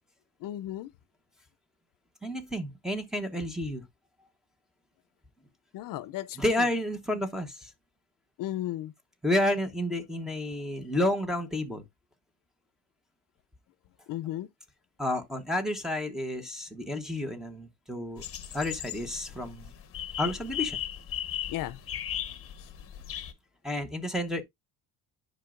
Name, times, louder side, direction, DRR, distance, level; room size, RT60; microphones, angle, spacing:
voice 1, 0.4-0.9 5.7-6.6 8.4-8.9 14.1-14.5 21.5-21.8 22.6-22.7, left 13 dB, 60° left, 0.5 m, -35 dB
voice 2, 2.2-3.8 6.4-7.7 9.2-11.8 15.0-18.2 18.5-19.7 20.2-20.8 23.6-24.4, left 1 dB, ahead, 0.9 m, -30 dB
sound 1, 18.2-23.3, left 11 dB, 35° left, 1.0 m, -37 dB
10.5 x 5.2 x 2.4 m
cardioid pair, 175°, 37 cm